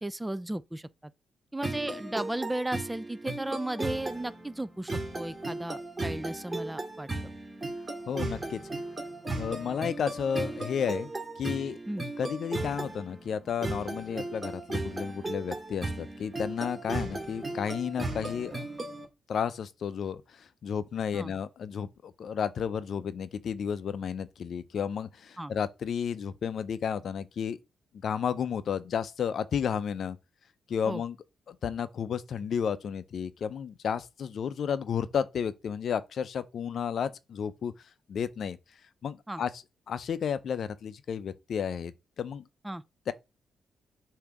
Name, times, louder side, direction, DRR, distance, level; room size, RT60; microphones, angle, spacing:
voice 1, 0.0-0.9 1.5-7.3 11.9-12.0 21.1-21.3 25.4-25.5 30.9-31.0 39.3-39.4 42.6-42.8, right 1 dB, 15° right, 0.5 m, -35 dB
sound 1, 1.6-19.1, right 2 dB, 30° right, 2.3 m, -36 dB
voice 2, 8.1-8.6 9.4-11.1 11.4-11.8 12.2-18.6 19.3-27.6 27.9-30.2 30.7-31.2 31.5-37.7 38.1-38.6 39.0-42.4 43.1-43.2, left 7 dB, 65° left, 0.6 m, -32 dB
6.7 x 2.8 x 4.9 m
hypercardioid pair, 40°, 0 cm